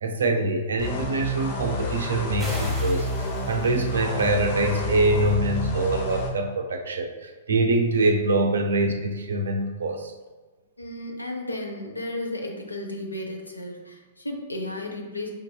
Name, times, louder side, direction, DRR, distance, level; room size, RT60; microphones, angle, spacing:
voice 1, 0.0-10.1, right 2 dB, 70° right, 3 dB, 0.4 m, -24 dB
sound 1, 0.8-6.3, equal, 45° left, 0.7 m, -29 dB
sound 2, 2.4-4.0, equal, 5° right, 1.1 m, -38 dB
voice 2, 10.8-15.3, left 1 dB, 85° left, 1 dB, 0.6 m, -33 dB
5.2 x 2.6 x 2.3 m, 1.3 s
figure-of-eight pair, 110°, 0 cm